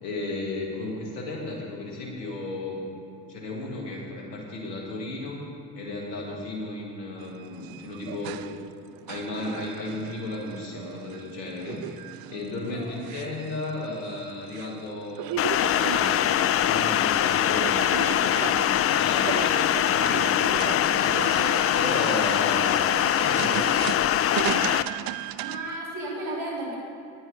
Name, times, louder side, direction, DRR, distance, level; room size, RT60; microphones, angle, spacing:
voice 1, 0.0-2.9 3.3-5.4 5.8-8.4 9.1-11.8 12.3-15.3 15.6-19.5 19.8-21.2 21.7-22.8 23.2-23.8, left 2 dB, 85° left, -1 dB, 1.8 m, -34 dB
sound 1, 7.2-25.8, right 14 dB, 50° right, 0.5 m, -37 dB
voice 2, 12.7-13.0 25.4-26.8, right 2 dB, 65° right, -3 dB, 2.9 m, -33 dB
sound 2, 15.4-24.8, left 10 dB, 30° left, 0.4 m, -23 dB
9.8 x 8.8 x 5.3 m, 2.6 s
hypercardioid pair, 50°, 48 cm